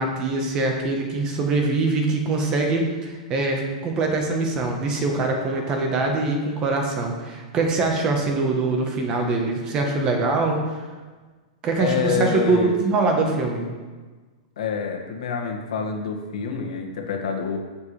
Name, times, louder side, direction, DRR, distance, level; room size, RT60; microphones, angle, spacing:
voice 1, 0.0-10.6 11.6-13.7, right 3 dB, 20° right, 2 dB, 1.1 m, -23 dB
voice 2, 11.8-12.7 14.6-17.6, left 6 dB, 80° left, 1 dB, 1.8 m, -27 dB
14.0 x 7.5 x 3.3 m, 1.4 s
supercardioid pair, 175°, 3 cm